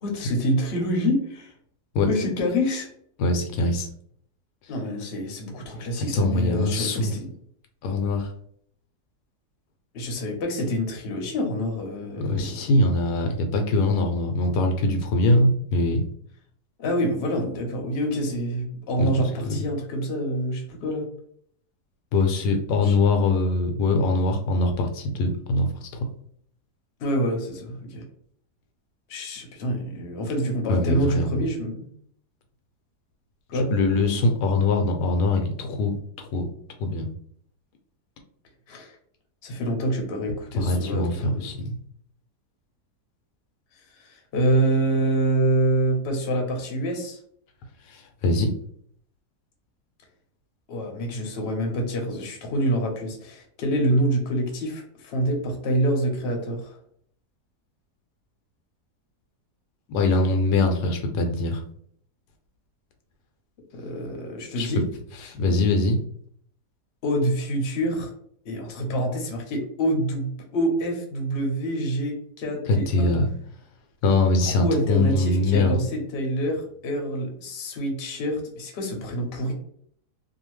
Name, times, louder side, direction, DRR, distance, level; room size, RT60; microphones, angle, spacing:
voice 1, 0.0-1.5 2.1-2.9 4.7-7.3 9.9-12.6 16.8-21.1 22.8-23.0 27.0-28.0 29.1-31.9 33.5-33.7 38.7-39.0 39.4-41.6 44.0-47.2 50.7-56.7 63.7-64.9 67.0-68.1 68.4-73.1 74.4-79.5, right 1 dB, 50° left, 2 dB, 0.8 m, -26 dB
voice 2, 3.2-3.9 6.1-7.1 7.8-8.3 12.2-16.0 19.0-19.1 19.4-19.6 22.1-26.1 30.7-31.4 33.5-36.4 36.8-37.1 40.6-41.8 47.9-48.5 59.9-61.6 64.6-64.7 65.3-66.0 72.7-73.3 74.0-75.8, left 2 dB, 80° left, 4 dB, 1.1 m, -23 dB
2.7 x 2.4 x 3.1 m, 0.63 s
omnidirectional pair, 1.7 m